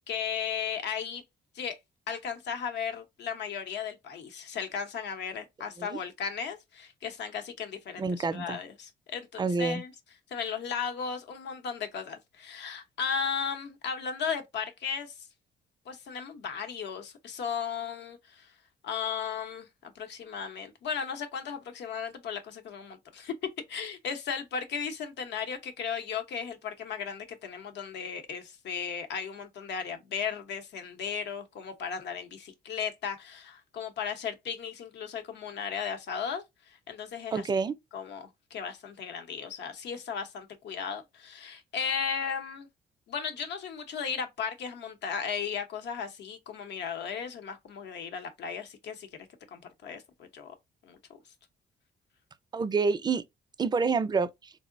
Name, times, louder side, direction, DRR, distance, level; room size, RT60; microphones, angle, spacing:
voice 1, 0.1-1.2 1.5-1.8 2.1-9.9 10.3-15.1 15.9-18.5 18.8-23.3 23.7-37.5 37.9-42.7 43.1-49.1 49.5-50.5 50.8-51.0, left 6 dB, 75° left, 0.8 m, -36 dB
voice 2, 8.0-8.6 9.4-9.8 37.3-37.7 52.5-53.2 53.6-54.5, right 4 dB, 25° right, 0.4 m, -28 dB
3.7 x 2.0 x 2.5 m
cardioid pair, 75°, 18 cm